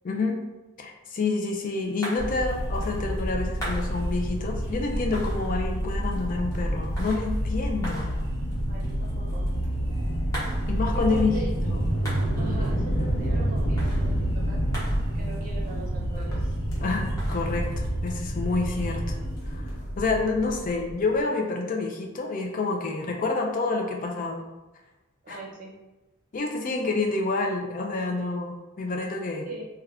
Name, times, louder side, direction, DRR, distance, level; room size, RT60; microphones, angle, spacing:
voice 1, 0.0-0.4 0.8-8.1 10.7-11.4 11.6-11.9 16.8-19.2 19.5-19.7 20.0-24.5 25.3-25.4 26.3-29.5, left 3 dB, 35° left, 1 dB, 0.3 m, -28 dB
sound 1, 1.4-19.5, equal, 15° left, 0.9 m, -44 dB
sound 2, 2.2-21.2, equal, 75° left, 0.9 m, -28 dB
voice 2, 8.7-9.5 10.9-11.5 12.4-14.6 15.1-16.5 25.2-25.7 29.4-29.7, right 2 dB, 40° right, -3 dB, 0.6 m, -40 dB
2.4 x 2.2 x 3.3 m, 1.1 s
head